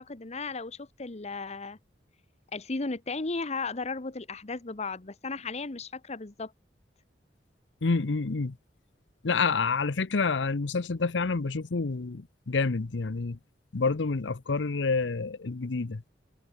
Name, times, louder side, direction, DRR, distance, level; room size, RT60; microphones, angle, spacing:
voice 1, 0.0-1.8 2.5-6.5, left 3 dB, 40° left, 1.1 m, -35 dB
voice 2, 7.8-8.5 9.2-13.4 13.7-16.1, left 4 dB, 90° left, 0.8 m, -28 dB
head